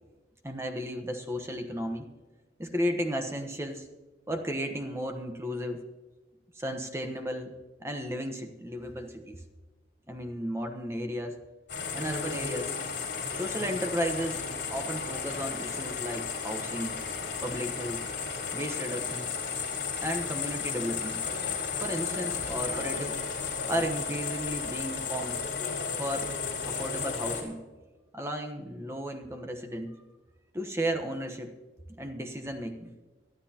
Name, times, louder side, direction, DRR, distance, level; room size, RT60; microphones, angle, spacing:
voice 1, 0.4-2.1 2.6-3.9 4.3-5.8 6.5-7.5 7.8-9.4 10.1-11.3 11.9-12.8 13.3-14.4 14.7-17.0 17.4-18.0 18.5-19.3 20.0-21.2 21.8-23.2 23.7-25.4 26.0-26.3 26.6-27.6 28.1-29.9 30.5-31.5 32.0-32.9, equal, 15° right, 4 dB, 1.1 m, -34 dB
sound 1, 11.7-27.4, left 5 dB, 70° left, 4.0 m, -34 dB
22.5 x 12.5 x 2.9 m, 1.2 s
head